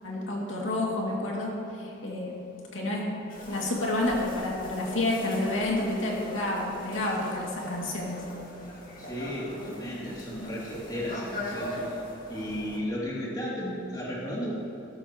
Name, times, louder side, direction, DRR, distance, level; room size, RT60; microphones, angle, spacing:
voice 1, 0.0-2.3 2.7-3.0 3.5-8.2, left 2 dB, 75° left, -3 dB, 2.4 m, -29 dB
sound 1, 3.3-12.8, left 1 dB, 45° left, 2.2 m, -40 dB
voice 2, 9.0-11.8 12.3-14.5, equal, 20° left, -6 dB, 2.8 m, -34 dB
17.0 x 13.5 x 3.1 m, 3.0 s
head